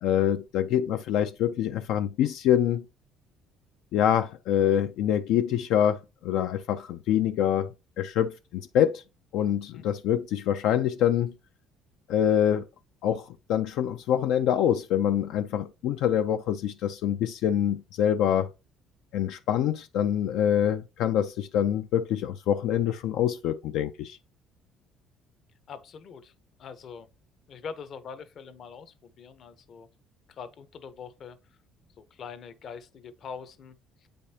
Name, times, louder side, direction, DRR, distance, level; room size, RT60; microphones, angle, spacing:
voice 1, 0.0-2.8 3.9-9.0 9.3-11.3 12.1-12.6 13.0-18.5 19.1-24.2, left 10 dB, 70° left, 0.4 m, -25 dB
voice 2, 25.7-26.3 26.6-27.1 27.5-29.9 30.3-31.4 32.0-34.1, left 6 dB, 40° left, 0.8 m, -43 dB
8.6 x 5.1 x 2.8 m
cardioid pair, 160°, 0 cm